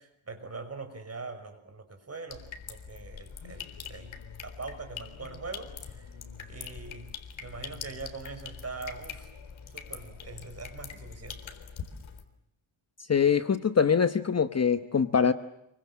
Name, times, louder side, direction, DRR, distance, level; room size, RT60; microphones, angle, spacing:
voice 1, 0.0-4.1 4.4-6.1 6.5-9.3 9.7-11.5, right 4 dB, 30° right, 6 dB, 6.1 m, -42 dB
sound 1, 2.3-12.2, left 6 dB, 65° left, 3.9 m, -43 dB
voice 2, 13.1-15.3, left 6 dB, 30° left, 11 dB, 1.1 m, -23 dB
28.5 x 24.5 x 7.4 m, 0.79 s
wide cardioid pair, 125°, 50 cm